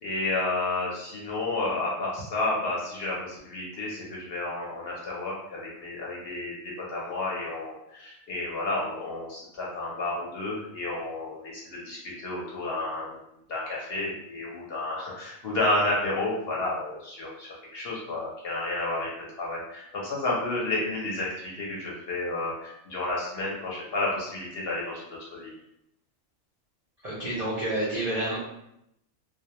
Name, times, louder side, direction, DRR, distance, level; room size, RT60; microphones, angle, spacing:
voice 1, 0.0-6.5 6.9-13.1 13.5-19.1 19.4-25.5, left 2 dB, 55° left, -4 dB, 0.7 m, -31 dB
voice 2, 27.0-28.4, right 1 dB, 55° right, -7 dB, 0.4 m, -29 dB
2.2 x 2.1 x 2.8 m, 0.79 s
omnidirectional pair, 1.4 m